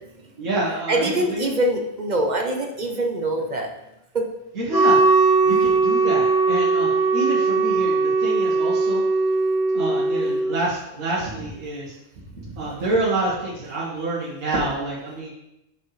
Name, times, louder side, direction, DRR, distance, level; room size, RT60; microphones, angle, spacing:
voice 1, 0.4-1.5 4.6-5.0 5.4-9.0 9.7-11.9 12.3-15.3, right 2 dB, 70° right, -7 dB, 1.9 m, -27 dB
voice 2, 0.9-3.7 4.1-4.2, right 1 dB, 40° right, 2 dB, 0.8 m, -23 dB
Wind instrument woodwind instrument, 4.7-10.6, right 3 dB, 30° left, 0.8 m, -19 dB
7.2 x 6.3 x 3.2 m, 0.88 s
omnidirectional pair, 1.5 m